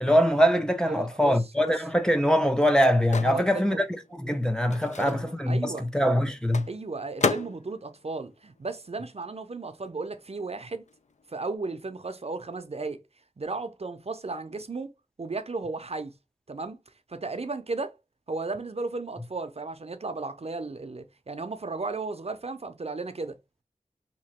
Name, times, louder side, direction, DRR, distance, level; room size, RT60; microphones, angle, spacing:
voice 1, 0.0-3.8 4.1-6.7, equal, 5° left, 0.5 m, -23 dB
voice 2, 0.9-1.8 3.2-3.8 4.8-5.9 6.7-10.8 11.3-13.0 13.4-14.9 15.2-16.1 16.5-16.8 17.1-17.9 18.3-23.4, right 3 dB, 50° right, 0.6 m, -35 dB
Microwave oven, 1.4-9.4 9.7-11.6, left 4 dB, 60° left, 0.4 m, -36 dB
2.9 x 2.5 x 4.2 m
wide cardioid pair, 60°, 14 cm